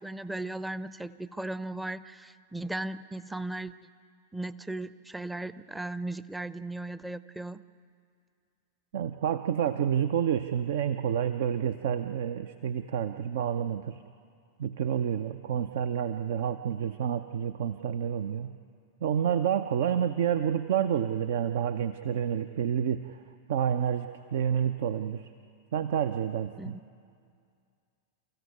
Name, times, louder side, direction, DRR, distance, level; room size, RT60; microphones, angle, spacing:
voice 1, 0.0-3.7 4.3-7.6 26.6-26.8, right 2 dB, 5° right, 15 dB, 0.7 m, -37 dB
voice 2, 8.9-14.0 14.6-18.6 19.0-23.2 23.5-25.3 25.7-26.8, right 8 dB, 55° right, 11 dB, 0.7 m, -29 dB
28.0 x 15.0 x 9.4 m, 2.3 s
figure-of-eight pair, 95°, 0 cm